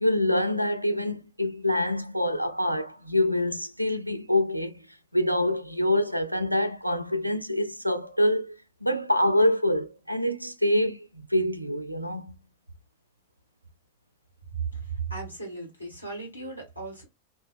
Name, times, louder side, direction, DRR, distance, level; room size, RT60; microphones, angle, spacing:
voice 1, 0.0-4.8 5.1-8.5 8.8-12.4, left 1 dB, 90° right, 0.3 m, -26 dB
voice 2, 15.1-17.0, right 2 dB, 85° left, 1.3 m, -38 dB
2.4 x 2.2 x 2.4 m
figure-of-eight pair, 90°, 0 cm